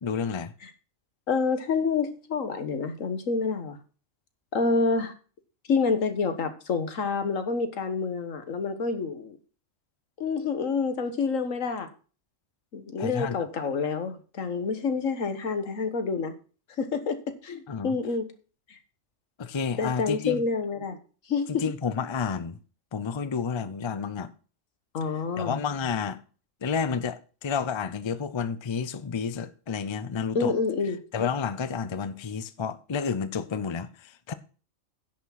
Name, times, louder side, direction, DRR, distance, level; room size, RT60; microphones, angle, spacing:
voice 1, 0.0-0.5 13.0-13.5 17.7-18.0 19.4-20.4 21.5-22.6 22.9-24.3 25.4-26.2 26.6-30.6 31.1-34.3, left 6 dB, 30° left, 0.5 m, -30 dB
voice 2, 1.3-3.8 4.5-5.1 5.7-9.4 10.2-11.9 12.7-16.3 16.8-17.2 17.4-18.3 18.7-18.8 19.8-21.0 21.3-21.6 24.9-25.6 30.3-31.0, left 4 dB, 85° left, 1.7 m, -28 dB
10.5 x 6.1 x 5.8 m
omnidirectional pair, 1.3 m